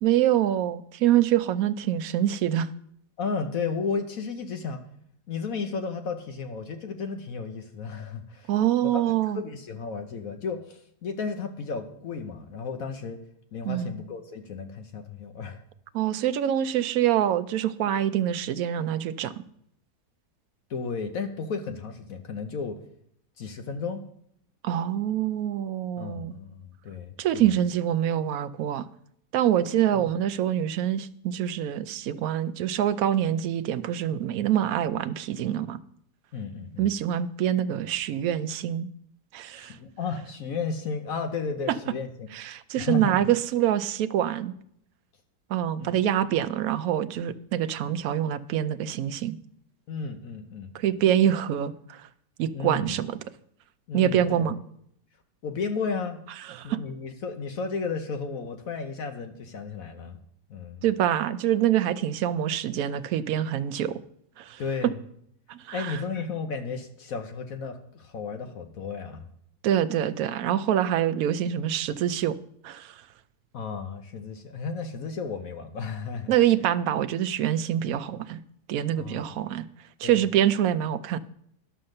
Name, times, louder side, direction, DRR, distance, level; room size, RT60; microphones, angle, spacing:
voice 1, 0.0-2.7 8.5-9.4 13.6-14.0 15.9-19.3 24.6-26.4 27.2-28.9 29.3-35.8 36.8-38.9 39.3-39.8 42.3-44.5 45.5-49.4 50.7-52.0 52.4-53.2 53.9-54.6 56.5-56.8 60.8-64.0 64.4-64.6 65.5-66.0 69.6-72.4 72.6-72.9 76.3-78.4 78.7-79.6 80.0-81.2, right 11 dB, 70° right, 13 dB, 0.9 m, -25 dB
voice 2, 3.2-4.8 5.3-8.5 8.9-13.2 13.5-15.6 20.7-22.8 23.4-24.0 26.0-27.5 29.9-30.0 36.3-36.9 39.5-42.3 42.8-43.2 45.8-45.9 49.9-50.7 52.5-53.0 53.9-54.5 55.4-56.2 56.6-60.2 60.5-60.8 64.6-65.0 65.7-69.2 73.5-76.3 78.9-79.4 80.0-80.3, left 5 dB, 65° left, 6 dB, 1.2 m, -33 dB
11.5 x 5.6 x 6.5 m, 0.69 s
omnidirectional pair, 1.7 m